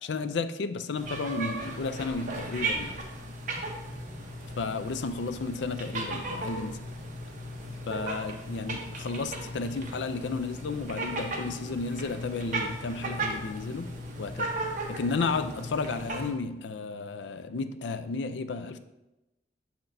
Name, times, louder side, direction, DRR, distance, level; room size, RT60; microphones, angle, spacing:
voice 1, 0.1-3.0 4.6-6.8 7.9-13.9 14.2-14.5 14.9-18.8, left 4 dB, 75° left, 11 dB, 0.4 m, -33 dB
sound 1, 0.9-16.3, right 2 dB, 45° right, 0.9 m, -36 dB
7.1 x 5.8 x 2.6 m, 0.97 s
head